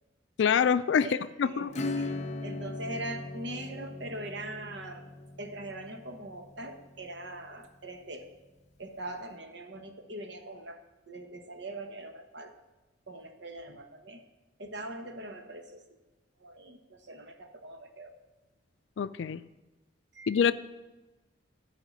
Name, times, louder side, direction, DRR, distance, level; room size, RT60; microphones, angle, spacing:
voice 1, 0.4-1.1 1.4-1.7 19.0-19.4 20.3-20.5, left 7 dB, 80° left, 14 dB, 0.4 m, -25 dB
voice 2, 1.0-5.1 5.4-8.3 8.8-10.8 11.1-12.5 13.1-14.2 14.6-15.8 16.4-18.1 20.1-20.4, right 1 dB, 80° right, 6 dB, 1.2 m, -42 dB
Acoustic guitar / Strum, 1.7-8.0, left 2 dB, 40° left, 0.6 m, -39 dB
13.0 x 5.0 x 7.2 m, 1.1 s
head